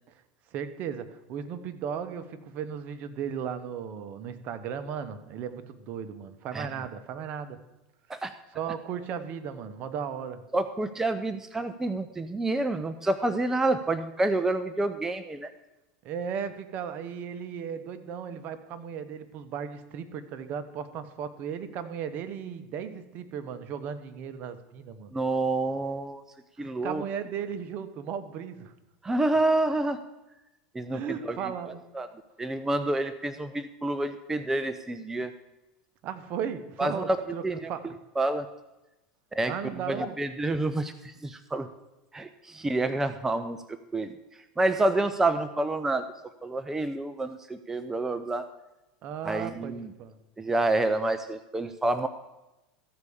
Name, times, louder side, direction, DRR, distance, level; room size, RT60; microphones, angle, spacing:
voice 1, 0.5-7.6 8.5-10.4 16.0-25.1 26.6-28.7 30.9-31.9 36.0-38.0 39.5-40.2 49.0-50.2, right 7 dB, 50° right, 10 dB, 1.0 m, -36 dB
voice 2, 10.5-15.5 25.1-26.2 26.6-27.0 29.0-30.0 30.7-31.0 31.9-32.1 32.4-35.3 36.8-37.7 38.2-38.5 39.3-39.5 39.9-41.7 42.1-44.1 44.6-46.0 46.4-48.5 49.2-49.9 50.4-52.1, right 2 dB, 10° right, 10 dB, 0.5 m, -28 dB
14.0 x 4.8 x 7.0 m, 1.0 s
hypercardioid pair, 110°, 4 cm